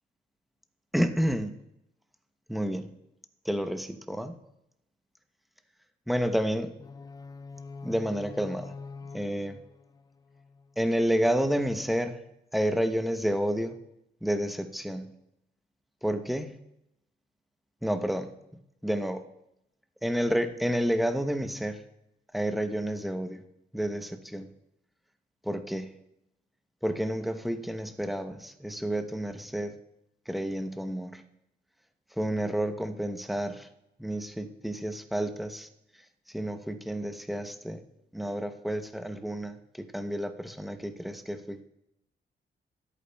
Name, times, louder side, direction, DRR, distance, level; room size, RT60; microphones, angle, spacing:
voice 1, 0.9-1.6 2.5-2.9 3.4-4.4 6.1-6.8 7.8-8.7 9.1-9.6 10.8-12.2 12.5-13.8 14.2-15.1 16.0-16.6 17.8-18.3 18.8-19.2 20.0-21.8 22.3-23.4 23.7-24.5 25.4-25.9 26.8-29.7 30.3-31.2 32.2-33.7 34.0-35.7 36.3-37.8 38.1-41.6, equal, ahead, 8 dB, 0.7 m, -30 dB
sound 1, 6.8-10.8, left 4 dB, 20° left, 0.3 m, -45 dB
22.5 x 8.4 x 2.3 m, 0.85 s
cardioid pair, 100°, 19 cm